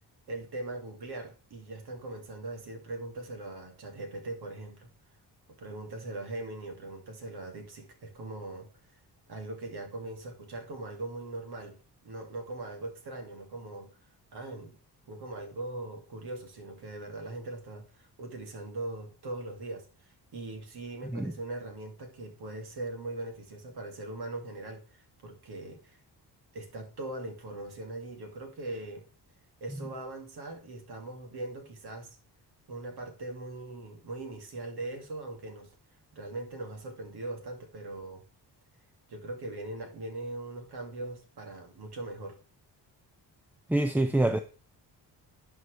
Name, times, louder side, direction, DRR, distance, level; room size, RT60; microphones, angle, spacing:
voice 1, 0.3-4.9 5.6-8.7 9.3-13.9 14.3-14.8 15.1-26.0 26.5-29.0 29.6-32.2 32.7-35.7 36.1-38.2 39.1-42.4, right 2 dB, 65° right, 2.2 m, -40 dB
voice 2, 43.7-44.4, right 1 dB, 5° right, 0.4 m, -25 dB
11.0 x 4.6 x 3.2 m
cardioid pair, 75°, 42 cm